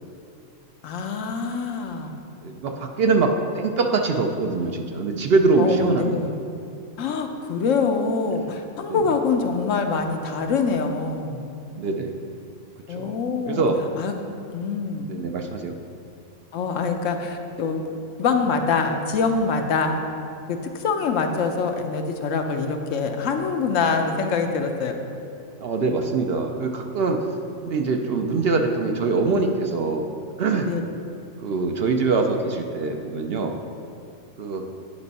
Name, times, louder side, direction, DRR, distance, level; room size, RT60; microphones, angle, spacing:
voice 1, 0.8-2.1 5.6-6.4 7.0-11.4 12.9-13.7 14.0-14.1 14.5-15.1 16.5-17.8 18.2-20.0 20.5-25.0 30.7-30.8, left 5 dB, 80° left, 5 dB, 1.0 m, -24 dB
voice 2, 2.4-6.3 8.4-8.5 8.9-9.1 11.8-12.1 13.0-13.1 13.5-13.8 15.1-15.7 25.6-27.2 27.6-30.1 30.4-30.8 31.4-33.6 34.4-34.6, right 3 dB, 60° right, 4 dB, 0.7 m, -23 dB
10.0 x 5.3 x 4.1 m, 2.6 s
omnidirectional pair, 1.3 m